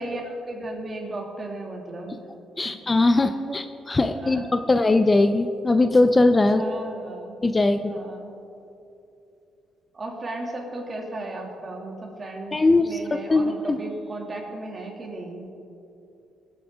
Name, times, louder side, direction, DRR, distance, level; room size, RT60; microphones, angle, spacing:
voice 1, 0.0-2.2 3.2-3.6 4.1-4.5 6.5-7.4 7.9-8.4 9.9-12.5 12.9-15.5, right 2 dB, 35° right, 0 dB, 2.5 m, -35 dB
voice 2, 2.6-6.6 7.4-7.8 12.5-13.0 13.3-13.8, left 2 dB, 25° left, 9 dB, 0.5 m, -20 dB
19.5 x 8.8 x 3.7 m, 2.7 s
cardioid pair, 90°, 0 cm